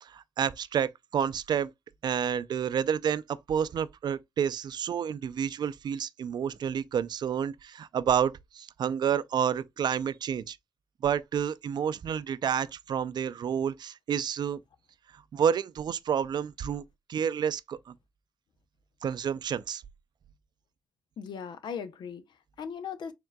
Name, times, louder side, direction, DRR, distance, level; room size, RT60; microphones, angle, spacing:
voice 1, 0.0-1.7 2.0-10.6 11.0-14.6 15.1-16.8 17.1-17.9 19.0-19.8, right 8 dB, 70° right, 0.4 m, -29 dB
voice 2, 21.2-23.1, left 7 dB, 85° left, 0.6 m, -38 dB
4.6 x 3.7 x 2.2 m
cardioid pair, 65°, 8 cm